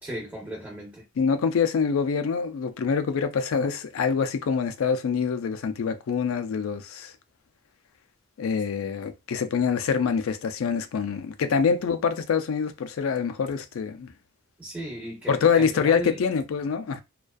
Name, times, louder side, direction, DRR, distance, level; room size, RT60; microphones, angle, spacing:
voice 1, 0.0-1.0 14.6-16.2, right 1 dB, 10° right, 0.6 m, -36 dB
voice 2, 1.2-7.1 8.4-14.1 15.3-17.0, left 6 dB, 75° left, 0.4 m, -25 dB
2.4 x 2.2 x 2.3 m
head